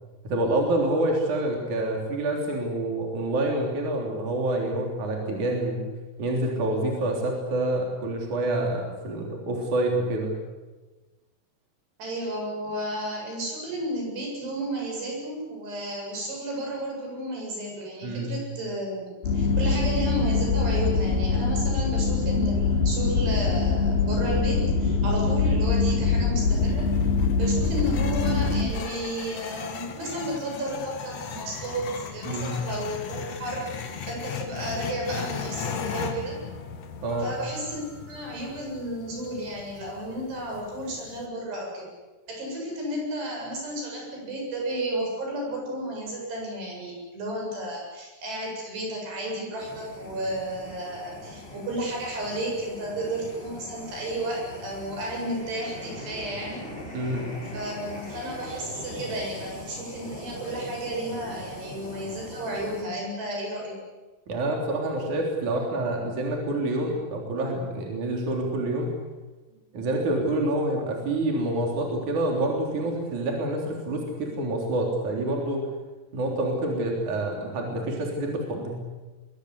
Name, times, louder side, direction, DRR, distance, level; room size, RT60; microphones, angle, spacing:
voice 1, 0.2-5.8 6.2-10.3 18.0-18.3 32.2-32.6 37.0-37.3 56.9-57.3 64.3-68.9 69.7-75.6 76.1-78.8, right 1 dB, 50° right, 1 dB, 4.8 m, -27 dB
voice 2, 12.0-26.9 27.4-36.4 37.2-41.9 42.3-56.6 57.5-63.8, right 1 dB, 85° right, -1 dB, 9.9 m, -32 dB
sound 1, 19.2-28.7, left 4 dB, 70° left, 4.5 m, -23 dB
sound 2, 26.4-41.3, left 6 dB, 50° left, 2.3 m, -38 dB
sound 3, 49.6-62.8, left 1 dB, 15° left, 8.0 m, -41 dB
24.0 x 22.5 x 8.2 m, 1.2 s
omnidirectional pair, 4.7 m